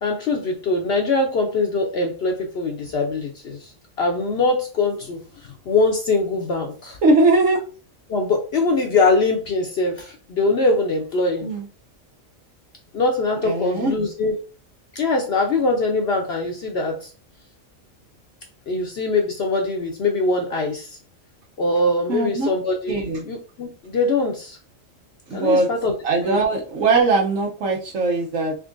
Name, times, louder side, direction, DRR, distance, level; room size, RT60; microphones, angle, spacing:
voice 1, 0.0-3.7 4.0-7.0 8.1-11.5 12.9-14.4 14.9-17.1 18.7-21.0 21.6-23.0 23.2-24.6 25.3-25.9 26.2-26.4, left 3 dB, 60° left, 2 dB, 0.8 m, -22 dB
voice 2, 7.0-7.6 11.4-11.7 13.4-13.9 22.1-22.5 22.9-23.2 25.3-25.7 26.0-28.5, right 3 dB, 75° right, -2 dB, 1.1 m, -20 dB
3.6 x 3.5 x 2.5 m, 0.37 s
omnidirectional pair, 1.4 m